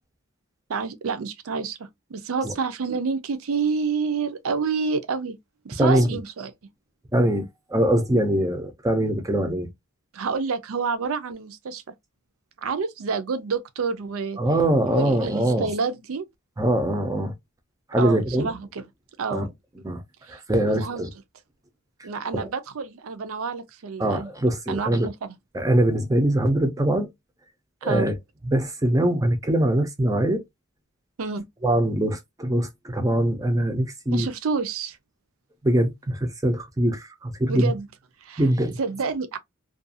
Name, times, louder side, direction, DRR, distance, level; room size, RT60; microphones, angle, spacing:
voice 1, 0.7-5.4 5.6-6.5 10.1-11.8 12.6-14.4 14.9-16.3 18.0-18.8 19.2-19.5 20.3-21.0 22.0-24.3 24.7-25.3 27.8-28.1 31.2-31.4 34.1-35.0 37.5-37.9 38.2-38.4 38.8-39.4, right 5 dB, 70° right, 0.5 m, -28 dB
voice 2, 5.8-6.2 7.1-9.7 14.4-15.7 16.6-17.3 17.9-18.5 19.3-19.5 19.8-20.0 20.3-21.1 22.3-22.5 24.0-25.1 25.5-27.1 27.8-28.2 28.5-30.4 31.6-34.3 35.6-37.7 38.4-38.8, right 1 dB, 15° right, 0.4 m, -22 dB
2.4 x 2.3 x 2.6 m
head